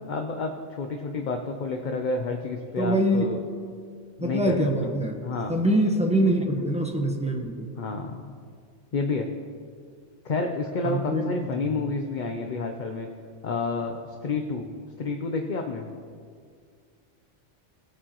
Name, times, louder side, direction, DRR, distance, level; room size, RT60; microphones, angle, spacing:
voice 1, 0.1-3.4 4.2-4.9 5.2-5.6 7.8-8.3 8.9-9.3 10.2-13.1 13.4-14.7 15.0-15.9, left 3 dB, 45° left, 3 dB, 0.7 m, -30 dB
voice 2, 2.8-3.3 4.2-5.2 5.5-7.7 10.8-11.3, right 1 dB, 5° right, 1 dB, 1.0 m, -24 dB
19.5 x 8.6 x 3.0 m, 2.1 s
omnidirectional pair, 1.3 m